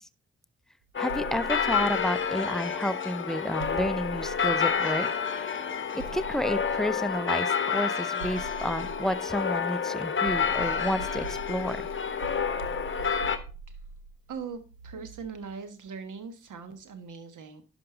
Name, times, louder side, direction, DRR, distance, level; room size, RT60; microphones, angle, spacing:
sound 1, 0.9-13.4, left 6 dB, 35° left, 1.0 m, -29 dB
voice 1, 1.0-5.1 5.9-11.9, equal, ahead, 13 dB, 0.6 m, -31 dB
sound 2, 1.1-2.6 3.6-5.2 6.0-7.3 8.2-9.8 10.2-15.5, right 4 dB, 90° right, 0.7 m, -43 dB
voice 2, 14.3-17.6, right 5 dB, 55° right, 10 dB, 1.4 m, -40 dB
11.0 x 5.1 x 3.8 m, 0.35 s
hypercardioid pair, 40°, 37 cm